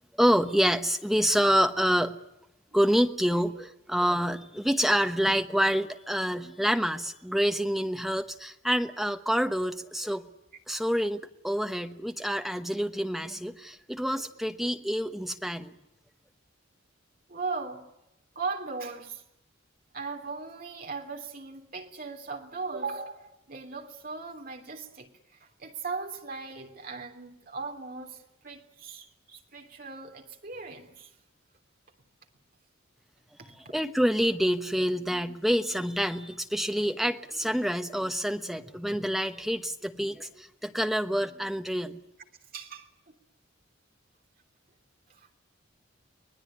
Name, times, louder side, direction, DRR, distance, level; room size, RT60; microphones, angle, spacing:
voice 1, 0.2-2.2 2.7-10.3 10.7-15.7 33.4-42.0, equal, ahead, 1.1 m, -27 dB
voice 2, 17.3-17.8 18.3-19.2 19.9-31.1 33.4-33.7 42.5-43.2 45.1-45.3, right 4 dB, 45° right, 3.2 m, -38 dB
24.5 x 19.5 x 9.9 m
head